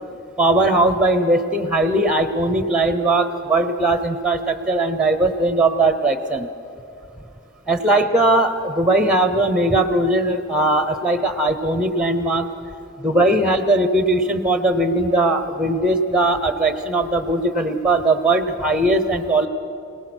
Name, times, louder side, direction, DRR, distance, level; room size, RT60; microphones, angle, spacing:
voice 1, 0.4-6.5 7.7-12.5 13.0-19.5, right 2 dB, 5° right, 9 dB, 0.9 m, -19 dB
26.0 x 18.5 x 6.2 m, 2.6 s
head